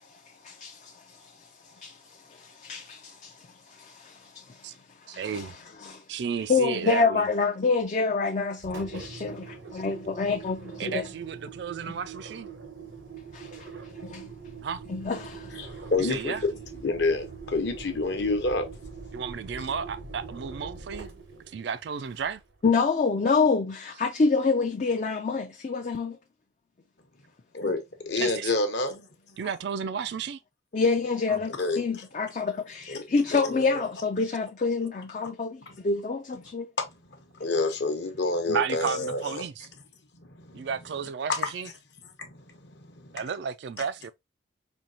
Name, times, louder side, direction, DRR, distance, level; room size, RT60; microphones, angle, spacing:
voice 1, 0.4-0.9 1.8-2.0 2.3-3.3 3.8-4.4 5.1-5.5 5.8-6.0 6.5-11.0 13.3-13.5 14.0-14.3 14.9-15.5 22.6-26.2 30.7-36.7, left 4 dB, 40° left, 0.4 m, -27 dB
voice 2, 5.1-5.5 6.1-7.3 9.7-9.8 10.8-12.5 14.6-14.8 16.0-16.4 19.1-21.1 21.5-22.4 28.2-28.5 29.4-30.4 31.3-31.4 38.5-39.7 40.5-41.7 43.1-44.1, right 6 dB, 60° right, 0.3 m, -33 dB
Engine, 8.6-22.6, right 5 dB, 80° right, 0.9 m, -43 dB
voice 3, 15.5-18.7 27.5-29.4 31.5-31.9 32.9-33.8 35.7-35.8 36.8-39.5 40.1-40.7 41.3-41.5 42.0-43.2, left 3 dB, 60° left, 0.9 m, -29 dB
4.4 x 2.8 x 2.7 m
head